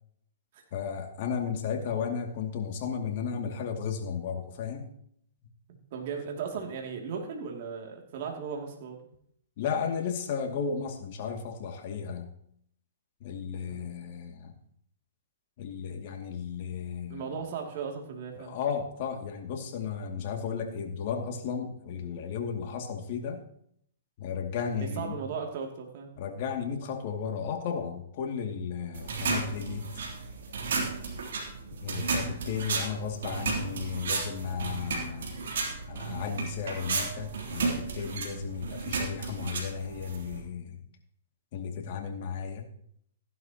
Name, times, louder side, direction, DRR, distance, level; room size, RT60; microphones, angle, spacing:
voice 1, 0.7-4.9 9.6-12.3 13.2-14.5 15.6-17.2 18.4-23.4 24.2-25.2 26.2-29.9 31.8-35.4 35.9-40.8 41.5-42.7, left 6 dB, 50° left, 3 dB, 2.4 m, -34 dB
voice 2, 5.9-9.0 13.6-13.9 17.1-18.5 24.8-26.1, right 6 dB, 55° right, 1 dB, 2.6 m, -36 dB
sound 1, 28.9-40.4, right 4 dB, 70° right, 3.1 m, -33 dB
15.5 x 11.0 x 3.0 m, 0.68 s
hypercardioid pair, 130°, 0 cm